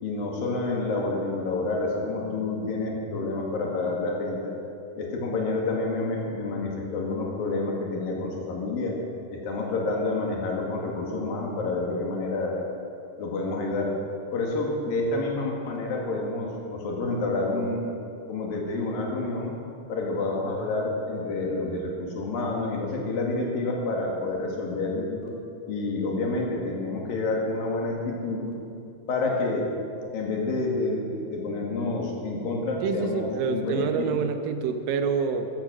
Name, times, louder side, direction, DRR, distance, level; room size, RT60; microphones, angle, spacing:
voice 1, 0.0-4.6 5.0-9.0 9.3-12.7 13.2-13.9 14.3-17.8 18.3-19.5 19.9-25.4 25.7-28.6 29.1-29.7 30.1-34.1, left 2 dB, 85° left, 0 dB, 3.9 m, -28 dB
voice 2, 32.8-35.5, right 6 dB, 85° right, 7 dB, 2.6 m, -27 dB
14.0 x 13.5 x 6.4 m, 2.6 s
omnidirectional pair, 4.0 m